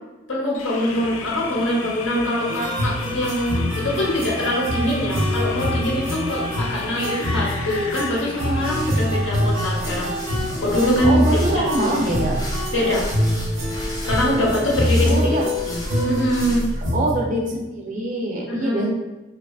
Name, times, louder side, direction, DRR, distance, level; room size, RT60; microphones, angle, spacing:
voice 1, 0.3-10.1 10.6-11.2 11.5-12.0 12.7-13.1 14.1-15.4 15.6-15.8 16.0-16.6 18.5-18.9, left 1 dB, 65° left, -3 dB, 0.7 m, -23 dB
sound 1, 0.5-9.0, left 4 dB, 90° left, 0.3 m, -34 dB
sound 2, 2.5-17.1, equal, 80° right, 0.9 m, -25 dB
sound 3, 8.3-16.9, equal, 20° left, 0.5 m, -33 dB
voice 2, 11.0-12.3 15.0-15.5 16.9-18.9, right 2 dB, 40° right, -2 dB, 0.5 m, -24 dB
3.0 x 2.3 x 2.3 m, 1.1 s
head